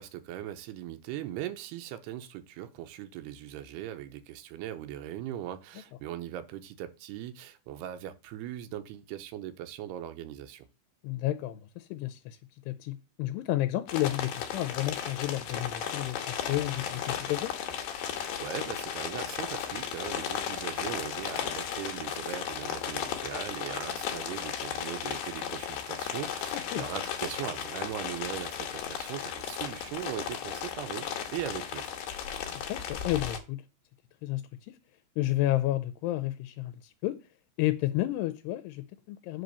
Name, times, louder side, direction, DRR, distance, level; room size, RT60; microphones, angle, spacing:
voice 1, 0.0-10.7 18.1-31.1 31.3-31.8, right 12 dB, 85° right, 2.8 m, -39 dB
voice 2, 11.0-12.4 12.7-17.5 26.5-26.8 32.7-33.6 34.2-34.8 35.2-37.2 37.6-39.4, left 15 dB, 85° left, 2.7 m, -31 dB
sound 1, 13.9-33.4, left 9 dB, 70° left, 2.7 m, -35 dB
7.9 x 3.9 x 6.8 m
omnidirectional pair, 4.7 m